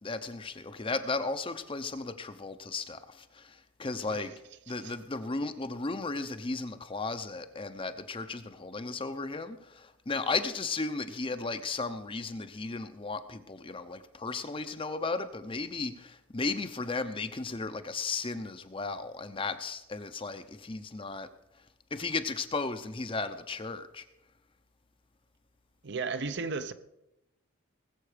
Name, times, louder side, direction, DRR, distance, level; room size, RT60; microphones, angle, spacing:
voice 1, 0.0-4.3 4.7-21.3 21.9-24.1, left 3 dB, 25° left, 0.6 m, -35 dB
voice 2, 25.8-26.7, right 4 dB, 50° right, 0.7 m, -34 dB
19.5 x 7.6 x 5.0 m
head